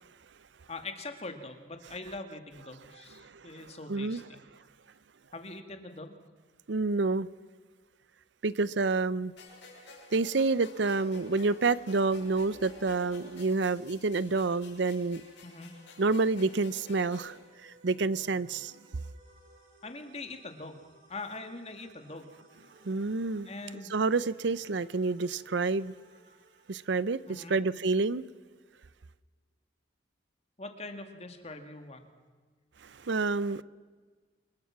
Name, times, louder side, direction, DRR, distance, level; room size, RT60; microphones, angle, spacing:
voice 1, 0.7-4.4 5.3-6.2 15.4-15.7 19.8-20.8 21.1-22.3 23.5-23.9 27.3-27.6 30.6-32.0, left 2 dB, 35° left, 2.2 m, -42 dB
voice 2, 3.2-4.2 6.7-7.3 8.4-9.3 10.1-15.2 16.0-17.4 17.6-18.7 22.8-23.5 23.9-25.9 26.7-28.2 32.8-33.6, right 3 dB, 65° right, 0.6 m, -28 dB
sound 1, 9.4-17.4, left 2 dB, 70° left, 6.2 m, -51 dB
sound 2, 12.3-27.6, right 1 dB, 45° right, 6.5 m, -61 dB
26.5 x 22.0 x 6.0 m
head